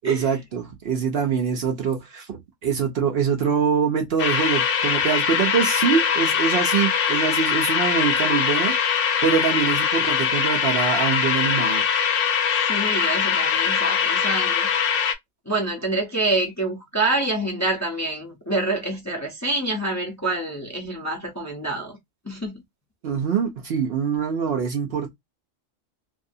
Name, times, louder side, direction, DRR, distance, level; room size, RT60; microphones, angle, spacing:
voice 1, 0.0-8.8 9.2-11.8 23.0-25.1, right 6 dB, 60° right, 0.7 m, -24 dB
sound 1, 4.2-15.1, left 7 dB, 60° left, 0.6 m, -22 dB
voice 2, 12.6-14.7 15.5-22.0 22.2-22.6, right 2 dB, 20° left, 0.6 m, -26 dB
2.7 x 2.4 x 2.6 m
omnidirectional pair, 1.3 m